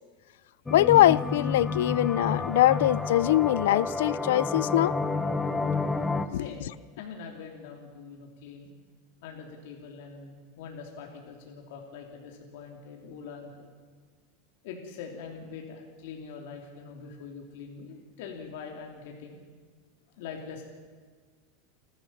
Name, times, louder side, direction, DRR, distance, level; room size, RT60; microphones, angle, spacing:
voice 1, 0.7-4.9 6.3-6.4, left 14 dB, 80° left, 0.5 m, -22 dB
sound 1, 0.7-6.3, left 3 dB, 10° left, 0.9 m, -30 dB
voice 2, 6.3-6.7 7.0-8.7 9.2-13.7 14.6-19.4 20.2-20.6, left 5 dB, 60° left, 3.2 m, -43 dB
29.0 x 13.0 x 7.4 m
supercardioid pair, 165°, 0 cm